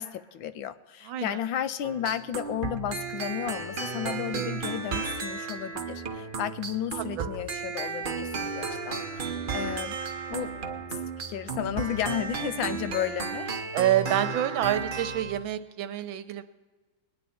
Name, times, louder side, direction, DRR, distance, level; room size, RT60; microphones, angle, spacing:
voice 1, 0.0-10.0 10.3-10.5 10.9-11.0 11.3-13.6, left 10 dB, 85° left, 13 dB, 1.4 m, -33 dB
voice 2, 1.1-1.4 13.7-16.4, right 12 dB, 80° right, 11 dB, 1.5 m, -27 dB
sound 1, 1.8-15.4, right 5 dB, 45° right, 0.7 m, -34 dB
20.5 x 9.7 x 4.3 m, 1.3 s
omnidirectional pair, 2.1 m